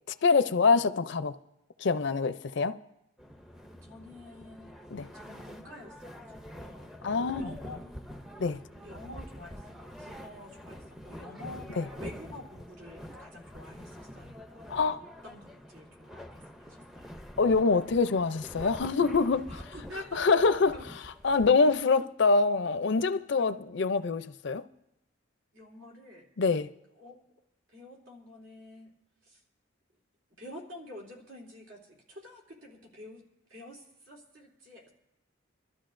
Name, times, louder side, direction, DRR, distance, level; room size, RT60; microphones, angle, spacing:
voice 1, 0.1-1.4 1.8-2.8 4.9-5.1 7.0-7.4 8.4-8.6 11.8-11.9 14.7-15.0 17.4-19.6 20.1-20.7 21.2-24.6 26.4-26.7, left 4 dB, 60° left, 0.5 m, -25 dB
sound 1, 3.2-21.8, equal, ahead, 0.5 m, -46 dB
voice 2, 3.8-4.7 5.1-6.9 7.3-8.0 8.8-14.7 15.2-17.2 19.5-20.2 20.7-20.8 23.3-23.7 25.5-26.3 27.0-27.2 27.7-28.9 29.2-29.4 30.4-34.9, left 1 dB, 80° right, 3.1 m, -48 dB
25.0 x 12.5 x 2.6 m
head